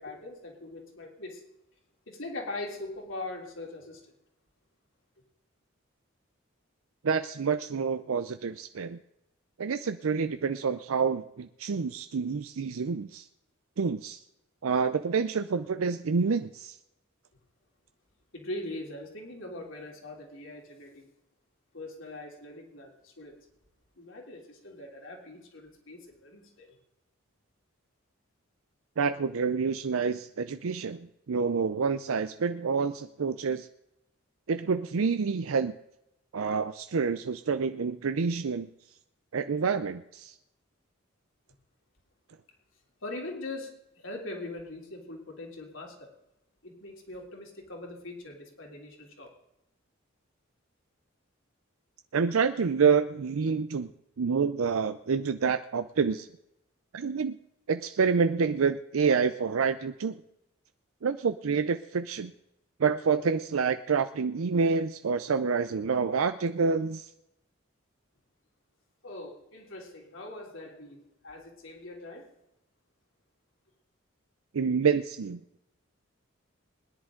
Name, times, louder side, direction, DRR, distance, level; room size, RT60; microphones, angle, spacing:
voice 1, 0.0-1.4 2.1-4.0 18.3-21.1 21.7-23.4 24.0-26.7 43.0-43.7 44.0-46.1 46.6-49.3 69.0-72.3, left 2 dB, 70° left, 0 dB, 3.4 m, -41 dB
voice 2, 7.0-9.0 9.6-13.3 13.8-14.2 14.6-16.8 29.0-33.7 34.5-35.7 36.3-38.7 39.3-40.3 52.1-53.9 54.2-56.3 56.9-57.4 57.7-60.2 61.0-62.3 62.8-67.1 74.5-75.4, right 5 dB, 85° right, 11 dB, 0.5 m, -28 dB
20.5 x 10.5 x 3.8 m, 0.84 s
head